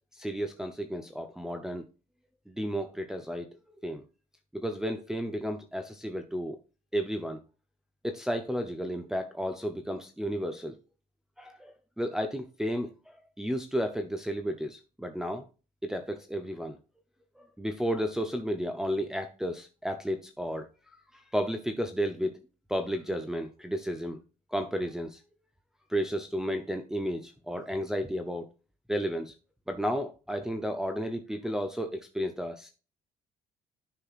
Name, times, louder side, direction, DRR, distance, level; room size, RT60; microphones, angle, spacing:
voice 1, 0.1-1.9 2.5-3.6 3.8-4.0 4.5-6.6 6.9-7.4 8.0-10.8 11.4-15.4 15.8-16.8 17.4-20.7 21.1-22.4 22.7-24.2 24.5-25.2 25.9-28.5 28.9-29.3 29.7-32.7, equal, 5° right, 0.7 m, -33 dB
10.0 x 5.6 x 2.5 m
cardioid pair, 110°, 17 cm